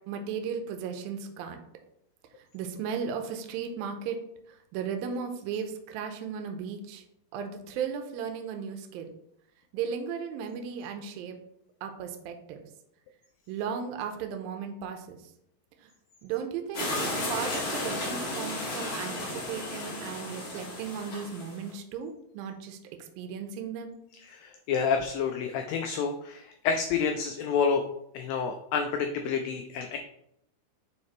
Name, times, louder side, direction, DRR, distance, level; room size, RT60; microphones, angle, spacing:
voice 1, 0.1-1.6 2.5-4.2 4.7-7.0 7.3-9.1 9.7-11.4 11.8-12.6 13.5-15.2 16.2-16.9 17.3-19.1 19.5-22.8 23.2-24.0, right 7 dB, 80° right, 5 dB, 2.3 m, -35 dB
sound 1, 16.7-21.7, left 1 dB, 45° left, 2.6 m, -33 dB
voice 2, 24.3-27.9 28.1-30.0, left 6 dB, 85° left, 5 dB, 2.0 m, -29 dB
8.7 x 4.2 x 3.1 m, 0.77 s
omnidirectional pair, 4.6 m